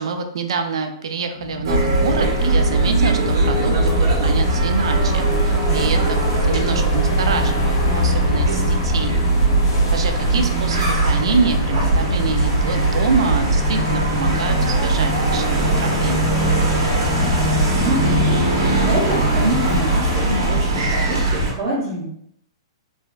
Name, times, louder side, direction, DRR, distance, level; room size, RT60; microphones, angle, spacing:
voice 1, 0.0-9.2 9.9-16.3, right 4 dB, 75° right, 7 dB, 0.4 m, -26 dB
sound 1, 1.4-12.8, left 3 dB, 5° left, 0.5 m, -38 dB
sound 2, 1.6-21.5, right 2 dB, 60° right, 1.0 m, -19 dB
sound 3, 1.9-20.4, left 2 dB, 55° left, 0.6 m, -30 dB
voice 2, 17.8-22.0, right 1 dB, 30° right, -10 dB, 0.9 m, -25 dB
3.2 x 2.4 x 2.3 m, 0.72 s
hypercardioid pair, 175°, 3 cm